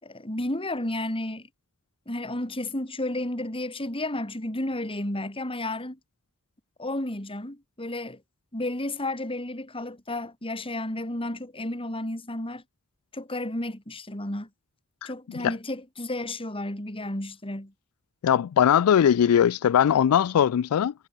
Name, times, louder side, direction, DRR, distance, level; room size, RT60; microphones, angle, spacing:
voice 1, 0.0-1.5 2.1-6.0 6.8-8.2 8.5-12.6 13.1-14.5 15.0-17.7, left 1 dB, 25° left, 4.1 m, -32 dB
voice 2, 18.2-20.9, left 9 dB, 85° left, 0.4 m, -20 dB
head